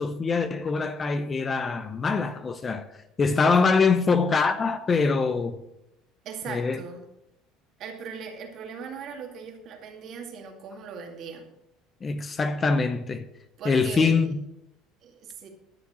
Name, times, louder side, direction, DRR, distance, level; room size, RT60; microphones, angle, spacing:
voice 1, 0.0-2.8 3.2-5.6 6.5-6.8 12.0-13.3 13.6-14.4, left 4 dB, 25° left, 0.7 m, -24 dB
voice 2, 3.3-4.0 6.2-7.0 7.8-11.5 13.6-14.2 15.0-15.5, right 6 dB, 50° right, 2.2 m, -39 dB
12.0 x 6.0 x 6.3 m
cardioid pair, 125°, 0 cm